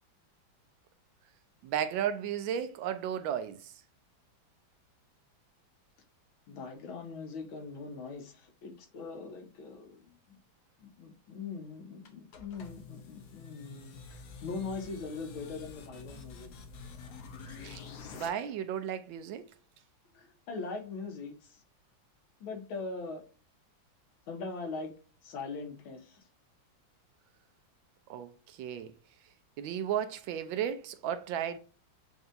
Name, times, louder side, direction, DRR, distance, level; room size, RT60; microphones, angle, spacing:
voice 1, 1.6-3.7 17.6-17.8 18.1-19.5 28.1-28.9 29.6-31.6, right 9 dB, 75° right, 1.3 m, -34 dB
voice 2, 6.5-10.4 10.8-16.5 20.1-21.6 22.4-23.2 24.3-24.9 25.2-26.2, left 4 dB, 80° left, 1.7 m, -41 dB
sound 1, 12.0-18.3, left 5 dB, 65° left, 1.1 m, -48 dB
7.8 x 2.7 x 2.5 m
omnidirectional pair, 2.2 m